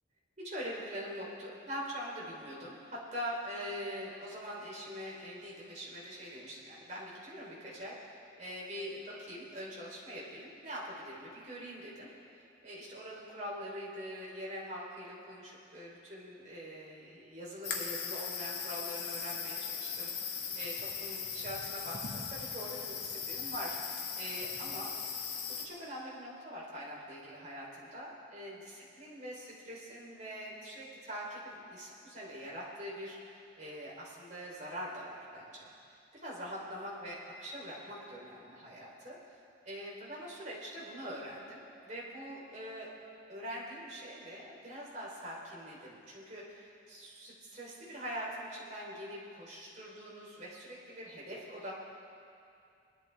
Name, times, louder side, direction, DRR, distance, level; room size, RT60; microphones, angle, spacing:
voice 1, 0.4-24.9 25.6-35.7 36.1-39.2 39.7-42.9 43.3-51.8, equal, 40° right, -6 dB, 3.4 m, -43 dB
sound 1, 17.6-25.6, left 6 dB, 60° left, 1.4 m, -39 dB
20.5 x 11.5 x 3.4 m, 2.5 s
head